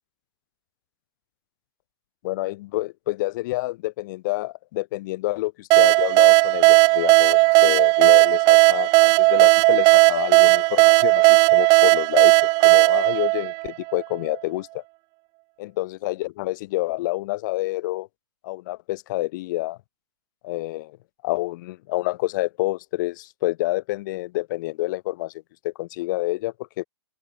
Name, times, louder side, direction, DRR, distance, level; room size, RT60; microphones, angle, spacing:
voice 1, 2.2-14.8 15.6-18.1 18.4-19.8 20.4-21.0 21.2-25.3 25.6-26.8, left 19 dB, 45° left, 7.5 m, -28 dB
sound 1, 5.7-14.2, right 27 dB, 30° right, 0.6 m, -16 dB
open air
hypercardioid pair, 130°, 14 cm